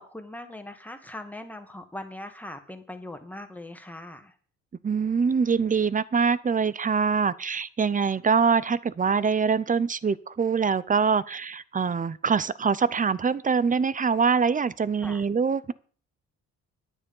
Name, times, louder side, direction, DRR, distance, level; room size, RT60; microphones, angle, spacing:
voice 1, 0.0-4.3 15.0-15.2, left 1 dB, 5° left, 7 dB, 1.9 m, -40 dB
voice 2, 4.8-15.7, right 5 dB, 25° right, 18 dB, 0.7 m, -24 dB
9.9 x 9.3 x 5.5 m, 0.43 s
cardioid pair, 90°, 30 cm